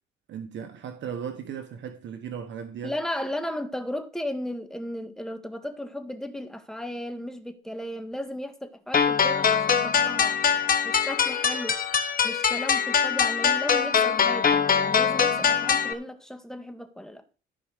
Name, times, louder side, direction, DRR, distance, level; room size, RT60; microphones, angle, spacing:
voice 1, 0.3-2.9, right 8 dB, 65° right, 1.3 m, -36 dB
voice 2, 2.8-10.4 10.8-11.8 12.2-17.2, left 1 dB, 5° left, 1.8 m, -35 dB
sound 1, 8.9-15.9, left 7 dB, 45° left, 1.4 m, -23 dB
14.0 x 4.8 x 6.5 m
cardioid pair, 90°, 20 cm